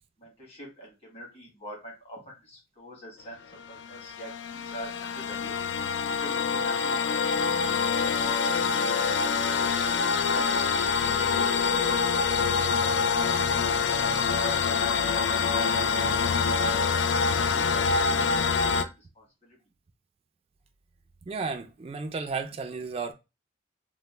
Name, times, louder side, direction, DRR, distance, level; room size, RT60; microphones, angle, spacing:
voice 1, 0.2-3.4 3.7-5.6 6.1-7.6 16.8-19.6, equal, 35° left, 1.5 m, -46 dB
sound 1, 3.6-18.8, left 5 dB, 70° left, 0.3 m, -25 dB
voice 2, 21.3-23.1, right 4 dB, 30° right, 0.3 m, -33 dB
3.0 x 2.0 x 3.2 m
head